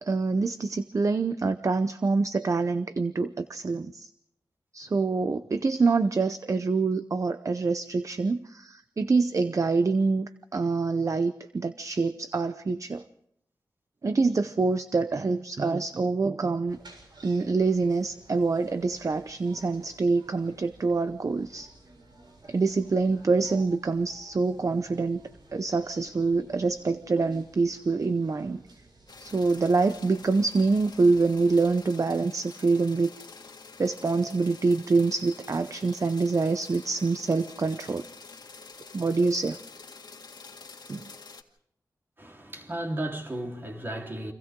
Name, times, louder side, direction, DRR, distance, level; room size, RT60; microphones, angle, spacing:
voice 1, 0.0-4.1 4.7-13.0 14.0-16.8 17.2-21.7 22.5-25.2 25.5-28.6 29.2-33.1 33.8-38.0 38.9-39.6 40.9-41.1, right 4 dB, 45° right, 0.8 m, -26 dB
sound 1, 16.7-31.8, right 2 dB, 80° right, 7.1 m, -55 dB
sound 2, 29.1-41.4, left 4 dB, 70° left, 2.0 m, -47 dB
voice 2, 42.2-44.3, right 1 dB, 30° right, 3.9 m, -34 dB
30.0 x 25.5 x 3.8 m
wide cardioid pair, 100°, 8 cm